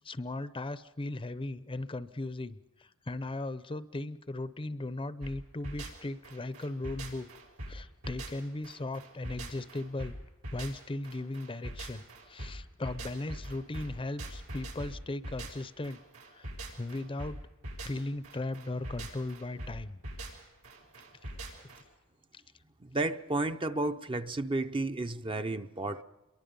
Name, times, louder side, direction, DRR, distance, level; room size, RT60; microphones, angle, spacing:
voice 1, 0.0-2.6 3.1-7.3 7.7-10.1 10.5-16.0 16.3-16.5 16.8-17.4 17.8-20.0, left 2 dB, 25° left, 14 dB, 0.7 m, -37 dB
sound 1, 5.2-21.8, right 1 dB, 90° right, 6.5 m, -43 dB
voice 2, 22.8-26.0, right 2 dB, 25° right, 8 dB, 0.7 m, -32 dB
27.5 x 23.0 x 5.4 m, 1.1 s
head